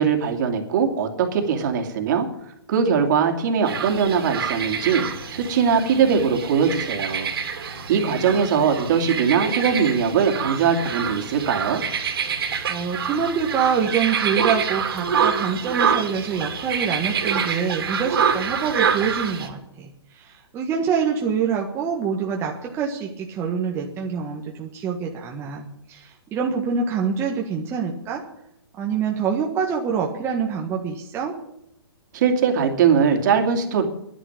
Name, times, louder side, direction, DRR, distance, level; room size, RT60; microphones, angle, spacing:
voice 1, 0.0-2.3 2.7-5.1 5.3-7.3 7.9-11.8 32.1-33.8, right 6 dB, 45° right, 4 dB, 2.7 m, -21 dB
sound 1, 3.7-19.5, right 7 dB, 65° right, 3.0 m, -26 dB
voice 2, 12.7-28.2 28.8-31.3, right 6 dB, 20° right, 0 dB, 1.5 m, -26 dB
11.5 x 10.0 x 9.5 m, 0.80 s
hypercardioid pair, 145°, 13 cm